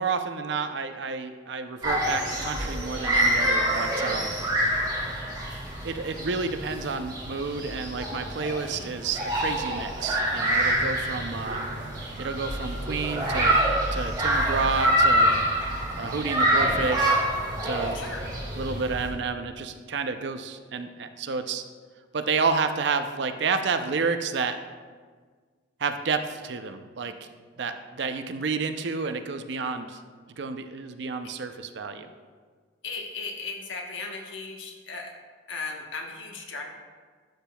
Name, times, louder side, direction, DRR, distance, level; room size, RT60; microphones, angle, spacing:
voice 1, 0.0-4.4 5.8-11.7 12.2-13.6 13.9-15.4 16.0-17.3 17.6-18.0 18.6-21.6 22.1-24.6 25.8-27.1 27.6-30.0 30.4-32.1, right 4 dB, 65° right, 8 dB, 0.5 m, -30 dB
sound 1, 1.8-19.1, right 1 dB, 20° right, 2.1 m, -26 dB
voice 2, 17.9-18.3 32.8-35.1 35.5-36.6, left 4 dB, 85° left, 1 dB, 1.2 m, -36 dB
11.5 x 7.0 x 2.3 m, 1.5 s
head